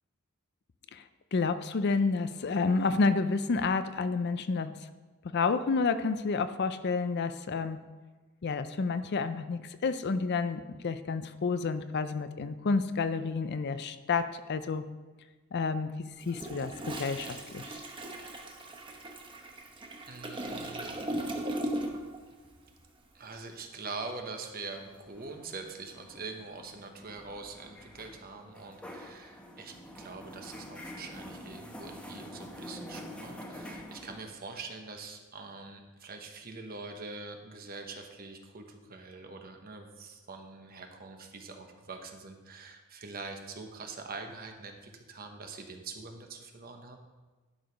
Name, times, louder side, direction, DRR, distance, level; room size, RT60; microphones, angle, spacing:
voice 1, 1.3-4.9 5.3-7.8 8.4-14.8 15.5-15.9 16.2-17.8, left 4 dB, 50° left, 11 dB, 0.5 m, -30 dB
Toilet flush, 16.2-22.2 22.4-22.7, right 1 dB, 25° right, 1.0 m, -38 dB
voice 2, 20.1-21.0 23.1-47.0, right 3 dB, 45° right, 4 dB, 1.0 m, -44 dB
sound 1, 24.7-34.2, equal, 5° left, 1.0 m, -47 dB
11.5 x 4.8 x 5.3 m, 1.3 s
head